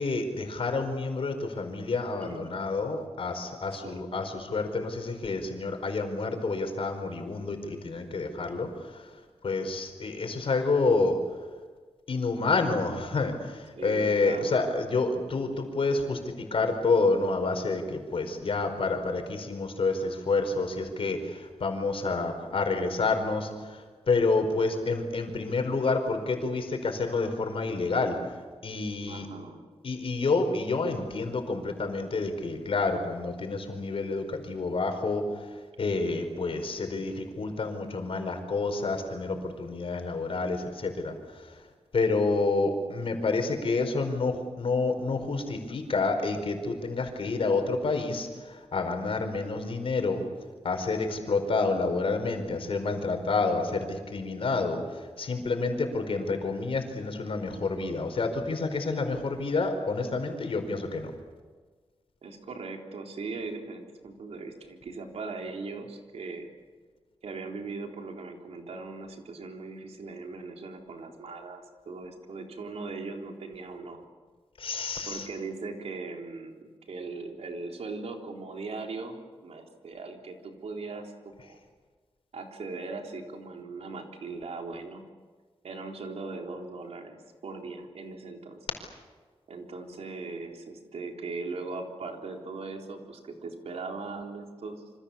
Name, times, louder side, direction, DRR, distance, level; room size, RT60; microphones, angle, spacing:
voice 1, 0.0-9.1 9.4-11.2 12.1-28.3 28.6-29.3 29.8-41.6 41.9-50.2 50.6-61.1 74.6-75.3, left 3 dB, 65° left, 5 dB, 4.8 m, -29 dB
voice 2, 2.2-2.5 3.7-4.1 13.8-14.6 22.2-22.7 29.0-29.7 62.2-66.5 67.2-74.1 75.1-81.6 82.3-85.0 85.6-88.7 89.5-94.8, right 3 dB, 90° right, 2 dB, 3.8 m, -39 dB
27.5 x 25.5 x 7.2 m, 1.4 s
wide cardioid pair, 115°, 10 cm